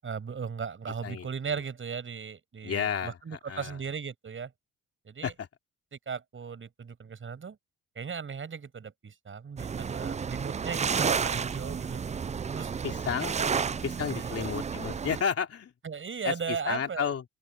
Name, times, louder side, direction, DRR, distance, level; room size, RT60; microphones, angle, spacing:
voice 1, 0.0-4.5 5.0-5.3 5.9-7.6 8.0-12.0 12.5-12.7 13.4-13.5 14.1-14.5 15.8-17.1, right 6 dB, 40° right, 7.0 m, -37 dB
voice 2, 2.6-3.8 5.2-5.5 11.1-11.2 12.8-13.4 13.8-15.7 16.2-17.2, left 7 dB, 50° left, 2.9 m, -32 dB
sound 1, 9.6-15.2, right 6 dB, 25° right, 0.5 m, -31 dB
open air
cardioid pair, 90°, 30 cm